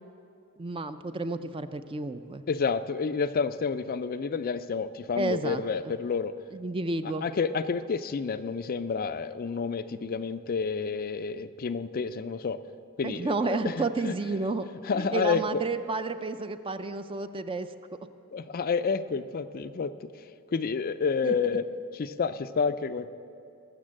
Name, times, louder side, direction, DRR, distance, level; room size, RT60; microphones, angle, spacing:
voice 1, 0.6-2.4 5.2-5.9 6.5-7.3 13.0-14.6 14.9-17.7 21.2-21.3, right 3 dB, 25° right, 10 dB, 0.4 m, -31 dB
voice 2, 2.5-6.3 7.2-12.6 13.0-14.1 14.8-15.6 18.3-20.1 20.5-21.7 21.9-23.1, left 5 dB, 45° left, 12 dB, 0.4 m, -29 dB
19.5 x 6.8 x 7.5 m, 2.6 s
head